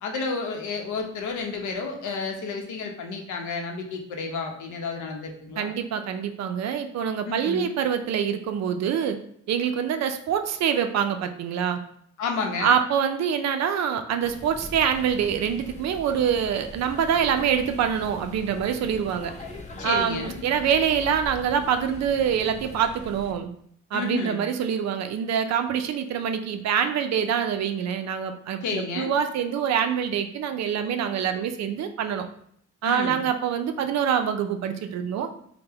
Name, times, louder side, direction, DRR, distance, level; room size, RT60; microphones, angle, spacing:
voice 1, 0.0-5.7 7.3-7.7 12.2-12.7 19.8-20.4 23.9-24.4 28.6-29.1 32.8-33.3, left 4 dB, 80° left, 2 dB, 0.7 m, -31 dB
voice 2, 5.6-9.2 9.5-11.8 12.6-19.3 19.8-23.5 23.9-32.3 32.8-35.3, right 8 dB, 60° right, 8 dB, 0.4 m, -25 dB
sound 1, 14.2-23.3, left 2 dB, 25° left, 0.6 m, -42 dB
3.3 x 2.1 x 3.4 m, 0.66 s
cardioid pair, 90°, 30 cm